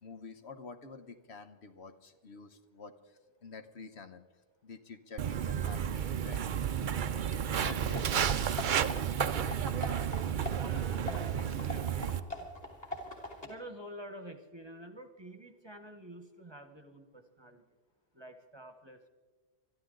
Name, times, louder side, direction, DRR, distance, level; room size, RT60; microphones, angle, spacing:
voice 1, 0.0-4.2 4.6-6.6 7.5-8.9, left 4 dB, 65° left, 8 dB, 1.2 m, -48 dB
Walk footsteps, 5.2-12.2, right 8 dB, 55° right, 0.6 m, -32 dB
sound 1, 7.7-13.5, left 1 dB, 35° left, 3.1 m, -42 dB
voice 2, 10.6-12.5 13.4-17.6 18.1-19.1, right 1 dB, 25° right, 7 dB, 1.1 m, -49 dB
24.5 x 13.5 x 3.9 m, 1.3 s
omnidirectional pair, 1.2 m